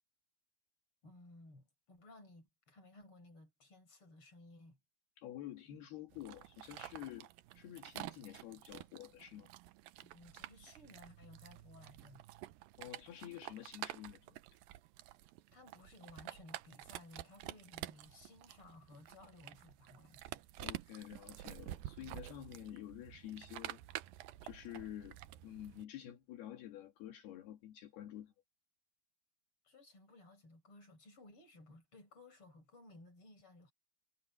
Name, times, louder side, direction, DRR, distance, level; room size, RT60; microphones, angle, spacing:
voice 1, 1.0-4.8 10.0-12.2 15.5-20.4 29.6-33.7, left 2 dB, 30° left, 6.9 m, -58 dB
voice 2, 5.2-7.3 7.6-9.5 12.8-14.4 20.6-23.8 24.4-28.3, left 12 dB, 75° left, 3.9 m, -49 dB
sound 1, 6.1-25.8, right 15 dB, 75° right, 2.2 m, -50 dB
omnidirectional pair, 4.7 m